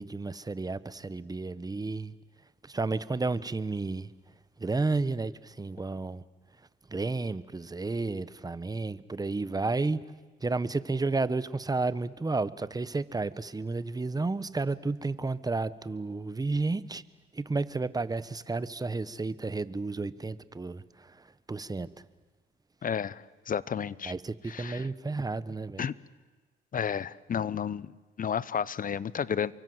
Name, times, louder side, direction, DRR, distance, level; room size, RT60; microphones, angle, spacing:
voice 1, 0.0-2.1 2.6-4.1 4.6-6.2 6.9-10.0 10.4-17.0 17.3-21.9 24.0-25.8, right 3 dB, 20° right, 1.1 m, -32 dB
voice 2, 22.8-24.1 24.5-24.9 25.8-25.9 26.7-27.9 28.2-29.5, left 7 dB, 45° left, 0.9 m, -32 dB
29.0 x 24.0 x 7.9 m
cardioid pair, 90°, 20 cm